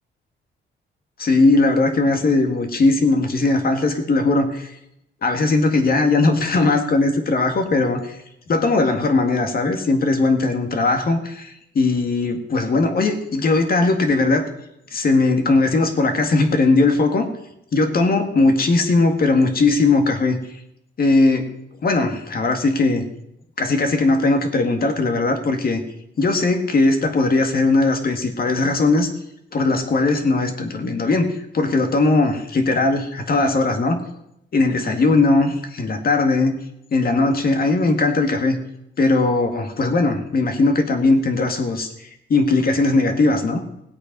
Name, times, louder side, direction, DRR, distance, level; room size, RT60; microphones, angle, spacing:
voice 1, 1.2-4.7 5.2-8.2 8.5-14.5 14.9-17.3 17.7-20.4 21.0-21.5 21.8-23.1 23.6-25.8 26.2-29.1 29.5-34.0 34.5-36.6 36.9-38.6 39.0-41.9 42.3-43.6, left 3 dB, 50° left, 5 dB, 2.0 m, -19 dB
18.0 x 8.2 x 5.4 m, 0.80 s
cardioid pair, 100°, 20 cm